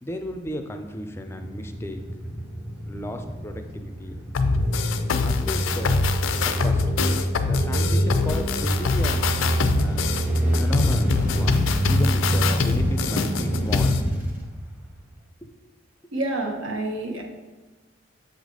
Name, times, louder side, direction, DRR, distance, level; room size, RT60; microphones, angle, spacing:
voice 1, 0.0-2.0 2.8-4.1 4.5-4.6 5.2-6.0 6.4-6.9 7.4-9.2 9.8-10.1 10.6-13.9 15.4-15.5, left 1 dB, 10° left, 5 dB, 0.4 m, -34 dB
sound 1, 0.9-15.2, right 1 dB, 10° right, 0.8 m, -26 dB
sound 2, 4.3-14.0, left 5 dB, 80° left, 0.4 m, -24 dB
voice 2, 16.1-17.2, right 2 dB, 75° right, 1 dB, 1.1 m, -28 dB
7.1 x 4.0 x 4.7 m, 1.2 s
head